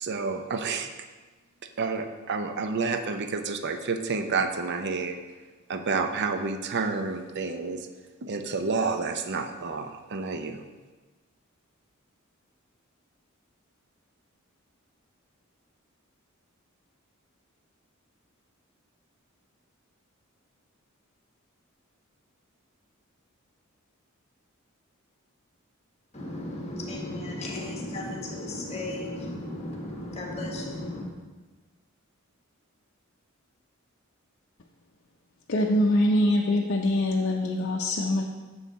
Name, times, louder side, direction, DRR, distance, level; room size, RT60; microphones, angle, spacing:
voice 1, 0.0-0.9 1.8-5.2 5.7-7.9 8.2-10.6, right 4 dB, 55° right, 7 dB, 0.5 m, -29 dB
voice 2, 26.1-31.1, left 1 dB, 30° left, 0 dB, 1.4 m, -35 dB
voice 3, 35.5-38.3, left 1 dB, 55° left, -2 dB, 0.6 m, -24 dB
7.0 x 6.4 x 4.0 m, 1.3 s
head